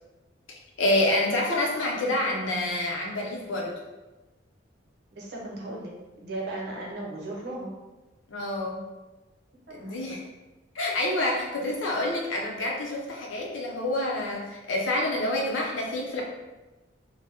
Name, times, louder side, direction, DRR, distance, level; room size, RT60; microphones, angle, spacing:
voice 1, 0.8-3.7 8.3-8.8 9.7-10.2 10.7-16.2, left 1 dB, 80° left, -2 dB, 0.6 m, -27 dB
voice 2, 5.1-7.7 9.7-10.2, right 2 dB, 55° right, -3 dB, 0.7 m, -37 dB
2.8 x 2.1 x 3.4 m, 1.1 s
head